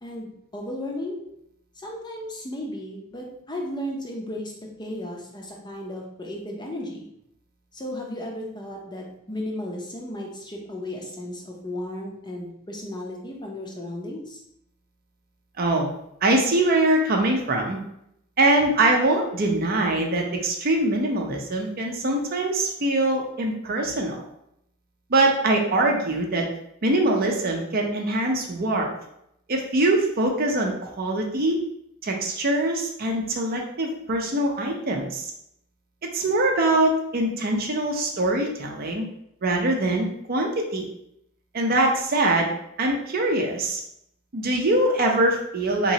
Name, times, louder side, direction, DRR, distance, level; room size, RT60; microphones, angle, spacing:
voice 1, 0.0-1.2 1.8-4.5 4.8-7.1 7.7-14.4, left 1 dB, 20° left, -1 dB, 0.6 m, -34 dB
voice 2, 15.6-15.9 16.2-17.8 18.4-24.2 25.1-26.5 26.8-28.9 29.5-31.6 32.0-35.3 36.1-39.1 39.4-40.9 41.5-42.5 42.8-43.8 44.3-45.9, right 2 dB, 45° right, 1 dB, 0.6 m, -23 dB
4.0 x 3.0 x 2.8 m, 0.76 s
head